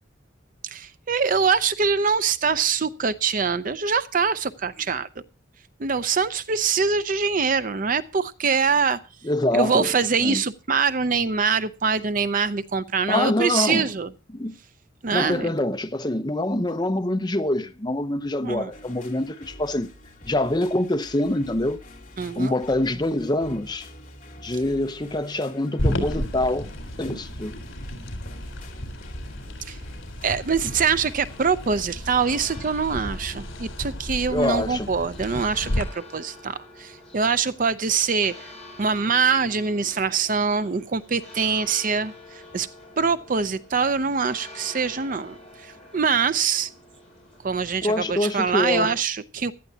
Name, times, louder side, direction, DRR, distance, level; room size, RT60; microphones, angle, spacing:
voice 1, 0.6-5.1 5.8-9.0 9.5-14.1 15.0-15.5 18.4-18.7 22.2-22.5 29.6-29.8 30.2-38.3 38.8-42.7 43.0-46.7 47.4-49.5, right 5 dB, 45° right, 0.6 m, -24 dB
voice 2, 9.2-9.9 10.2-10.4 13.1-13.9 14.3-14.6 15.1-19.9 20.2-21.8 22.4-23.9 24.4-26.7 27.0-27.5 34.3-34.9 47.8-48.9, left 1 dB, 20° left, 0.8 m, -25 dB
sound 1, 18.7-32.3, left 1 dB, 40° left, 2.7 m, -47 dB
sound 2, 25.8-35.8, equal, 70° left, 3.9 m, -32 dB
sound 3, 30.6-48.6, left 2 dB, 5° left, 8.0 m, -47 dB
17.0 x 12.5 x 2.8 m
head